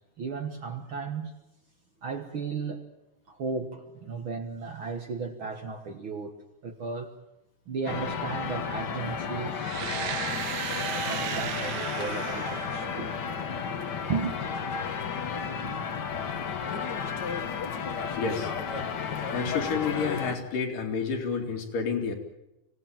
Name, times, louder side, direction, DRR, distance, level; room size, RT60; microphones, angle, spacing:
voice 1, 0.2-1.4 2.0-2.9 3.3-7.1 7.7-13.2 14.1-14.4, right 5 dB, 50° right, 1.8 m, -35 dB
sound 1, 7.9-20.4, left 6 dB, 50° left, 1.3 m, -33 dB
sound 2, 9.6-13.5, right 9 dB, 80° right, 2.8 m, -35 dB
voice 2, 18.2-18.5 19.3-22.1, left 5 dB, 80° left, 4.3 m, -29 dB
25.0 x 17.5 x 8.9 m
omnidirectional pair, 3.8 m